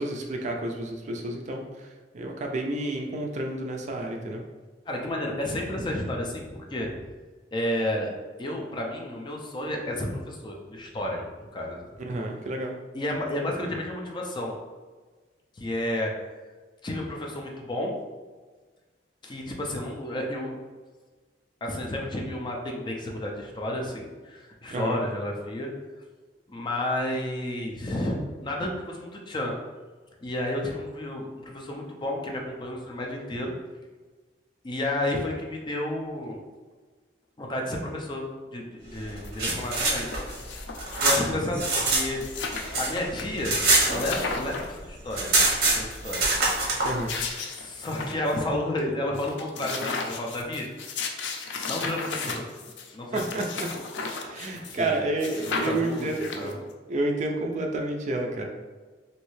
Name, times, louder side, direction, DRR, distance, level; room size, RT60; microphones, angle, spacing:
voice 1, 0.0-4.4 12.0-12.8 24.7-25.0 46.8-47.1 53.1-53.7 54.2-56.5 56.9-58.5, right 2 dB, 40° right, 2 dB, 0.4 m, -30 dB
voice 2, 4.9-6.9 7.5-8.1 8.4-11.8 12.9-14.5 15.6-16.1 16.8-17.9 19.2-20.6 21.6-25.7 26.5-28.1 28.4-29.5 30.2-33.5 34.6-36.4 37.4-38.2 38.5-40.1 41.0-42.2 42.8-43.6 43.9-44.6 44.8-45.3 45.6-46.2 47.5-50.7 51.7-52.4 52.9-53.2 54.2-55.0 55.5-56.1 56.4-56.5, left 1 dB, 25° left, 0 dB, 0.4 m, -31 dB
sound 1, 39.1-42.1 42.4-44.5 44.8-44.9 45.1-46.9, right 2 dB, 60° right, 0.8 m, -24 dB
sound 2, 39.2-39.3 39.6-41.3 41.7-41.8 42.0-43.2 43.6-43.7 44.0-44.8 45.2-46.1 46.8-48.4 48.8-48.9 49.2-54.9 55.2-56.7, left 4 dB, 85° left, 0.4 m, -35 dB
3.1 x 2.7 x 3.1 m, 1.4 s
head